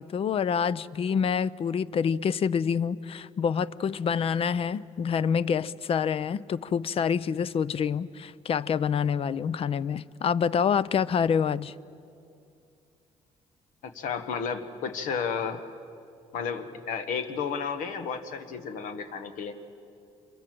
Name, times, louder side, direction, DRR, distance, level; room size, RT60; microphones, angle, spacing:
voice 1, 0.0-11.7, left 7 dB, 45° left, 18 dB, 0.6 m, -27 dB
voice 2, 13.8-15.6 16.3-19.5, left 6 dB, 80° left, 8 dB, 1.5 m, -32 dB
27.0 x 23.0 x 7.7 m, 2.6 s
cardioid pair, 95°, 13 cm